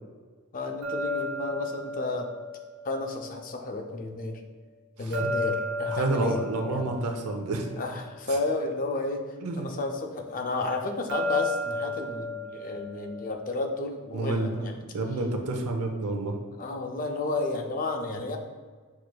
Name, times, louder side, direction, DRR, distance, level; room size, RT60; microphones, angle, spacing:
voice 1, 0.5-2.3 2.8-4.4 5.0-6.9 7.8-9.2 9.6-14.8 16.6-18.4, left 2 dB, 40° left, 4 dB, 0.4 m, -32 dB
sound 1, 0.8-3.9 5.1-8.6 11.1-14.2, left 2 dB, 50° right, 0.9 m, -34 dB
voice 2, 5.0-5.3 5.9-7.7 9.4-9.7 14.1-14.6 14.9-16.4, right 2 dB, 85° right, 3 dB, 0.6 m, -29 dB
6.0 x 3.1 x 2.2 m, 1.5 s
head